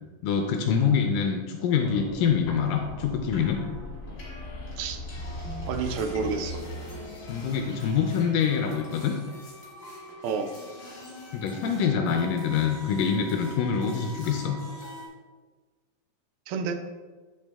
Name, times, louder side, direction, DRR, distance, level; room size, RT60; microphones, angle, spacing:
voice 1, 0.2-3.6 7.3-9.2 11.3-14.6, left 7 dB, 80° left, 4 dB, 2.0 m, -25 dB
sound 1, 1.8-15.1, left 1 dB, 65° left, 0.8 m, -40 dB
voice 2, 5.7-6.6 10.2-10.5 14.1-14.2 16.5-16.8, right 5 dB, 85° right, 7 dB, 2.4 m, -30 dB
8.2 x 3.4 x 3.4 m, 1.3 s
omnidirectional pair, 4.1 m